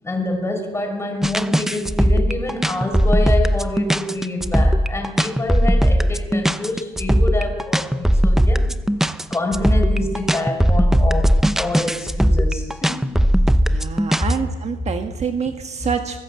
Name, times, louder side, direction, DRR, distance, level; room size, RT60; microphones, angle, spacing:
voice 1, 0.0-8.8 9.3-13.2, left 2 dB, 15° left, 4 dB, 5.7 m, -26 dB
sound 1, 1.2-14.3, equal, ahead, 0.7 m, -18 dB
voice 2, 13.6-16.2, right 6 dB, 40° right, 6 dB, 1.6 m, -26 dB
24.0 x 19.5 x 8.0 m, 1.3 s
cardioid pair, 110°, 17 cm